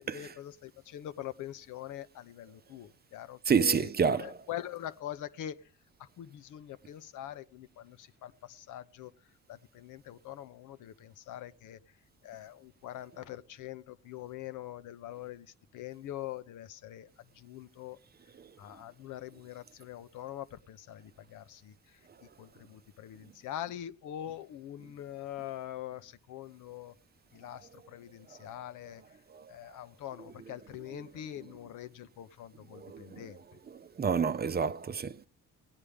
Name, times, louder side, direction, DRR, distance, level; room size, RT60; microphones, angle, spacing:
voice 1, 0.0-3.9 4.2-5.6 6.0-9.1 9.5-11.8 12.2-15.5 15.7-18.0 18.6-22.0 22.4-26.9 27.3-29.0 29.5-33.4 34.2-34.3, left 12 dB, 80° left, 0.8 m, -43 dB
voice 2, 3.5-4.4 29.3-29.5 30.5-30.6 30.9-31.4 32.7-33.4 33.7-35.2, right 6 dB, 30° right, 0.6 m, -30 dB
17.0 x 9.9 x 3.5 m
cardioid pair, 90°, 30 cm